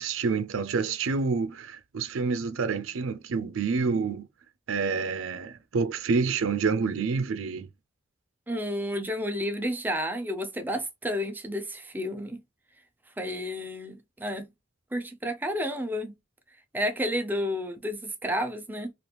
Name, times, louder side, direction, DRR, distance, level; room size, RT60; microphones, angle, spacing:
voice 1, 0.0-4.3 4.7-7.7, right 5 dB, 90° right, 0.5 m, -28 dB
voice 2, 8.5-12.4 13.2-14.5 14.9-16.1 16.7-18.9, equal, 10° right, 0.4 m, -31 dB
3.3 x 2.5 x 2.9 m
head